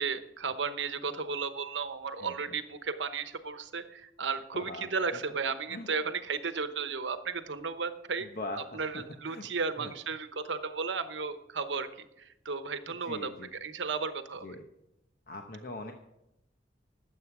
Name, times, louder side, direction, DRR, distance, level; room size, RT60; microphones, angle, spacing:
voice 1, 0.0-8.3 8.5-14.6, right 5 dB, 85° right, 10 dB, 0.9 m, -34 dB
voice 2, 4.5-4.9 5.7-5.9 8.4-9.5 9.8-9.9 13.1-13.5 14.4-14.6 15.3-15.9, left 2 dB, 50° left, 3 dB, 0.9 m, -41 dB
13.0 x 7.8 x 6.0 m, 0.87 s
head